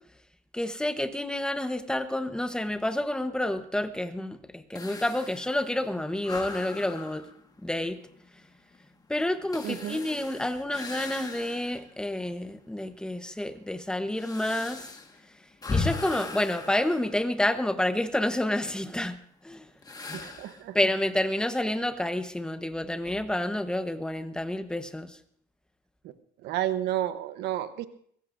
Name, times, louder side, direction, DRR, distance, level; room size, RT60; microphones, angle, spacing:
voice 1, 0.5-7.2 7.6-8.0 9.1-14.8 15.7-19.2 19.4-19.7 20.2-20.3 20.7-25.2, left 1 dB, 5° left, 9 dB, 1.0 m, -29 dB
sound 1, 4.8-11.9 12.4-12.5 13.2-17.8 19.8-20.7, left 3 dB, 20° left, 1.6 m, -38 dB
voice 2, 9.6-10.0 20.1-20.8 26.4-27.9, right 12 dB, 85° right, 12 dB, 1.0 m, -31 dB
23.0 x 16.5 x 2.6 m, 0.64 s
cardioid pair, 110°, 17 cm